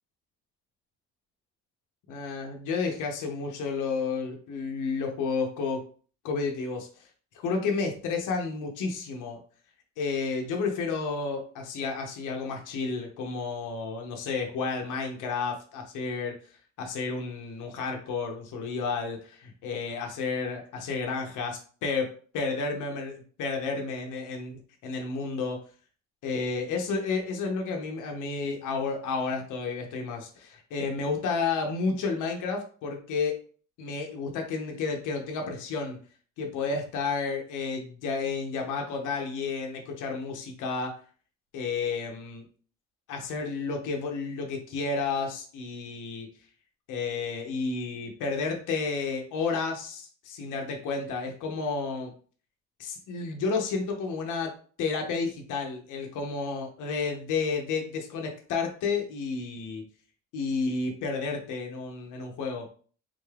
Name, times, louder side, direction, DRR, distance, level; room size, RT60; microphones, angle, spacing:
voice 1, 2.1-5.8 6.2-6.9 7.3-9.4 10.0-16.4 16.8-25.6 26.2-33.4 33.8-36.0 36.4-40.9 41.5-42.4 43.1-46.3 46.9-52.1 52.8-54.5 54.8-59.8 60.3-62.7, left 4 dB, 85° left, 2 dB, 0.8 m, -31 dB
3.8 x 2.3 x 3.3 m, 0.42 s
cardioid pair, 90°, 30 cm